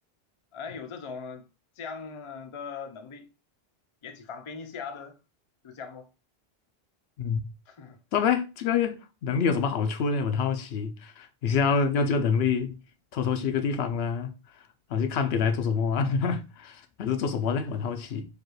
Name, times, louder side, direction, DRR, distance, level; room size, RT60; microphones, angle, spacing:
voice 1, 0.5-1.5 1.8-3.3 4.0-5.2 5.6-6.1 7.7-8.0, left 5 dB, 40° left, 0.5 m, -40 dB
voice 2, 8.1-12.8 13.1-14.3 14.9-18.3, left 6 dB, 75° left, 0.8 m, -26 dB
4.9 x 2.4 x 3.0 m
omnidirectional pair, 1.1 m